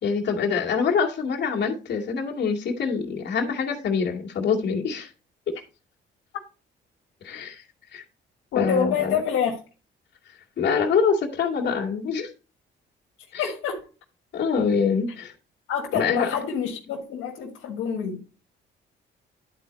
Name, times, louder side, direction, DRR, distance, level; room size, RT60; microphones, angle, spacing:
voice 1, 0.0-5.1 5.5-5.6 7.2-7.6 7.9-8.0 8.5-9.2 10.6-12.3 13.3-13.5 14.3-15.3 15.9-16.3, left 5 dB, 60° left, 2.2 m, -25 dB
voice 2, 8.5-9.6 13.4-13.8 15.7-18.2, left 7 dB, 90° left, 1.6 m, -27 dB
11.5 x 4.4 x 4.1 m
cardioid pair, 90°, 20 cm